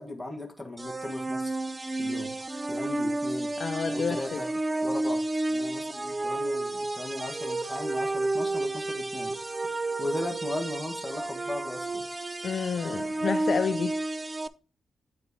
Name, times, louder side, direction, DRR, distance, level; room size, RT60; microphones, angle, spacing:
voice 1, 0.0-1.5 2.0-2.3 2.7-3.5 3.9-4.5 4.8-5.2 5.5-9.6 10.0-12.0, left 2 dB, 5° left, 1.4 m, -37 dB
sound 1, 0.8-14.5, right 2 dB, 25° right, 0.4 m, -31 dB
voice 2, 3.6-4.4 12.4-14.0, left 6 dB, 55° left, 0.3 m, -30 dB
9.6 x 4.2 x 2.7 m
cardioid pair, 80°, 0 cm